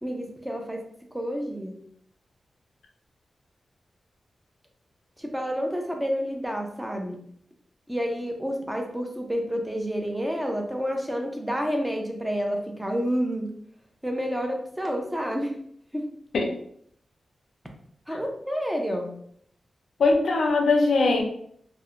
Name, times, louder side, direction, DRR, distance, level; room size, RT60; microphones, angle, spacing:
voice 1, 0.0-0.8 1.1-1.8 5.2-7.2 7.9-13.5 14.0-15.5 15.9-16.1 18.1-19.1, equal, 5° right, 2 dB, 0.5 m, -29 dB
voice 2, 20.0-21.2, left 3 dB, 85° left, 2 dB, 0.4 m, -21 dB
2.7 x 2.1 x 2.4 m, 0.65 s
cardioid pair, 65°, 0 cm